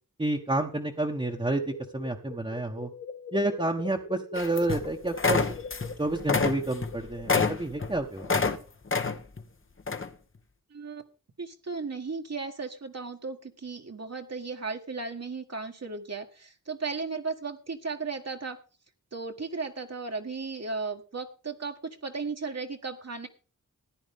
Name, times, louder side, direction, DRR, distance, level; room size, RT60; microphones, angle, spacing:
voice 1, 0.2-2.9 3.3-5.4 6.0-8.3, right 2 dB, 15° right, 0 dB, 1.3 m, -29 dB
sound 1, 1.2-7.7, left 5 dB, 80° left, 2.3 m, -43 dB
sound 2, 4.4-4.9 5.2-5.9 6.2-8.6 8.9-9.4 9.9-10.1, left 4 dB, 40° left, 1.2 m, -27 dB
voice 2, 10.7-11.0 11.4-18.6 19.1-23.3, right 4 dB, 50° right, 3 dB, 1.6 m, -35 dB
14.5 x 9.8 x 3.6 m, 0.36 s
cardioid pair, 50°, 32 cm